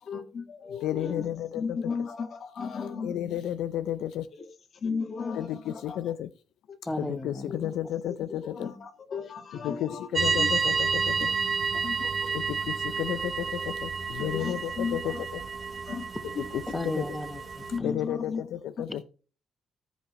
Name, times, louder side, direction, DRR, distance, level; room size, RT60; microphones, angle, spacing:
voice 1, 0.0-3.1 4.3-6.1 6.7-6.8 7.5-7.7 8.1-10.5 11.7-12.3 13.2-13.3 14.2-15.2 15.9-16.1 17.7-18.4 18.8-18.9, left 5 dB, 55° left, 1.8 m, -35 dB
voice 2, 0.8-1.8 3.0-4.3 5.3-6.3 7.0-8.7 9.6-11.3 12.3-15.4 16.5-17.0 17.8-19.0, left 11 dB, 85° left, 0.4 m, -32 dB
voice 3, 6.8-7.6 7.8-7.9 16.7-18.2 18.9-19.0, left 1 dB, 15° left, 1.2 m, -35 dB
sound 1, 10.1-17.8, right 5 dB, 40° right, 1.1 m, -30 dB
14.0 x 5.4 x 3.1 m
cardioid pair, 90°, 0 cm